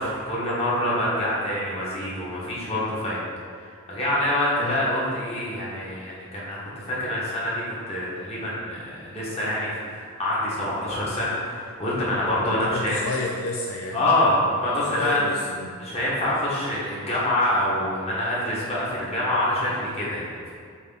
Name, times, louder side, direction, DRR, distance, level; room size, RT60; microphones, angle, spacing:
voice 1, 0.0-3.2 3.5-13.0 13.9-15.3 15.8-20.5, left 1 dB, 30° left, -7 dB, 1.7 m, -26 dB
voice 2, 12.4-14.0 14.8-15.8, left 2 dB, 70° left, 0 dB, 0.6 m, -31 dB
8.2 x 3.5 x 4.1 m, 2.1 s
head